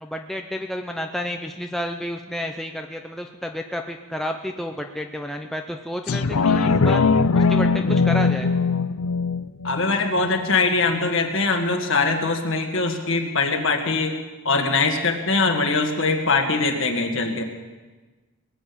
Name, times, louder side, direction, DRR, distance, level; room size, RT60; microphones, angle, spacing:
voice 1, 0.0-7.0 7.3-8.5, left 1 dB, ahead, 3 dB, 0.6 m, -31 dB
sound 1, 6.1-11.1 11.5-11.6, left 4 dB, 75° left, 0.6 m, -21 dB
voice 2, 9.6-14.2 14.5-17.4, left 3 dB, 60° left, 4 dB, 1.8 m, -22 dB
20.0 x 7.7 x 8.6 m, 1.3 s
head